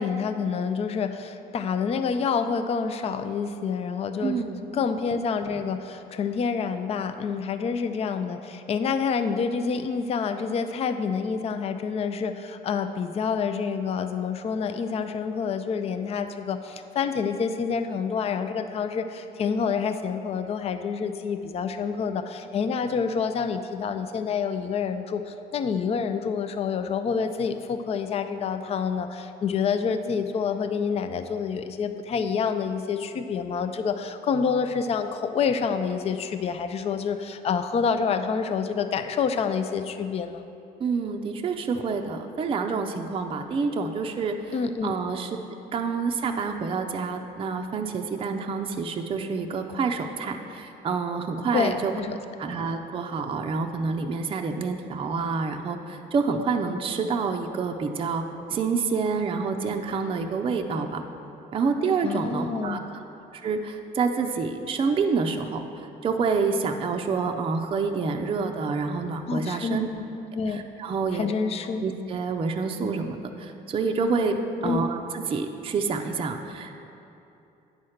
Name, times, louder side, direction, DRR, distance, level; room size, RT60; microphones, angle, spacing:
voice 1, 0.0-4.4 4.7-40.4 44.5-44.9 51.5-52.2 62.0-62.8 69.3-70.0 70.3-70.7 71.1-71.8 74.6-74.8, left 6 dB, 35° left, 9 dB, 0.4 m, -28 dB
voice 2, 4.2-4.7 40.8-44.5 44.8-45.4 45.7-51.9 52.4-58.2 58.5-61.0 61.5-62.8 63.3-65.6 66.0-69.9 70.5-71.3 71.8-74.4 74.6-76.8, right 4 dB, 30° right, 4 dB, 0.5 m, -28 dB
9.4 x 4.3 x 6.4 m, 2.8 s
cardioid pair, 110°, 17 cm